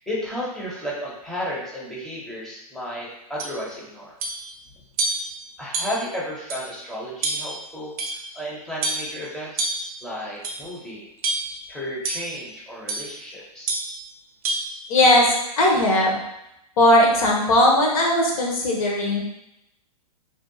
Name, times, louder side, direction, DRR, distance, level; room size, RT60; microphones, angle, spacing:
voice 1, 0.0-4.2 5.6-8.0 8.3-9.7 10.0-11.1 11.7-13.7, equal, ahead, -6 dB, 0.5 m, -33 dB
sound 1, 3.4-3.6 4.2-4.5 5.0-5.3 5.7-6.1 6.5-6.6 7.2-7.6 8.0-8.4 8.8-9.1 9.6-9.9 10.4-10.7 11.2-11.6 12.0-12.3 12.9-13.1 13.7-14.0 14.4-14.7, right 2 dB, 65° right, 0.5 m, -27 dB
voice 2, 14.9-15.3 15.6-16.2 16.8-19.2, left 1 dB, 65° left, -1 dB, 0.8 m, -18 dB
2.6 x 2.1 x 2.6 m, 0.84 s
hypercardioid pair, 140°, 20 cm